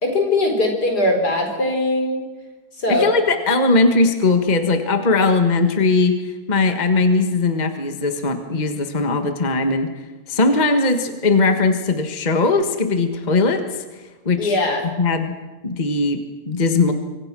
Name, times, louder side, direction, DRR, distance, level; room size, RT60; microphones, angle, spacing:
voice 1, 0.0-2.2 2.8-3.1 14.4-14.9, left 2 dB, 70° left, 4 dB, 5.0 m, -20 dB
voice 2, 2.9-9.9 10.3-13.6 14.2-14.6 15.0-15.3 15.6-16.9, left 3 dB, 25° left, 6 dB, 1.6 m, -19 dB
25.5 x 25.0 x 6.2 m, 1.2 s
omnidirectional pair, 1.8 m